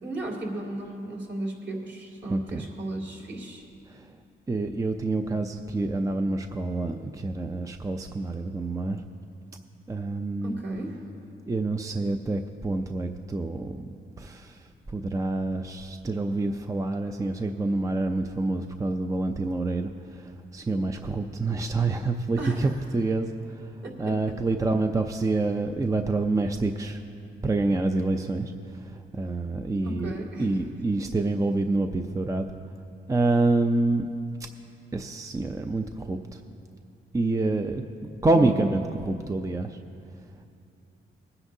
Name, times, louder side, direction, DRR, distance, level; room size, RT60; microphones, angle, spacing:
voice 1, 0.0-3.6 10.4-11.0 22.4-22.7 23.8-24.1 29.8-30.5 38.3-38.8, right 1 dB, 55° right, -1 dB, 2.5 m, -34 dB
voice 2, 2.3-2.7 3.9-4.1 4.5-9.0 9.9-10.6 11.5-13.9 14.2-23.7 24.0-27.0 27.4-32.4 33.1-34.1 34.9-36.4 37.1-39.8, right 2 dB, 15° right, 6 dB, 0.5 m, -27 dB
20.5 x 9.7 x 2.7 m, 2.6 s
cardioid pair, 85°, 21 cm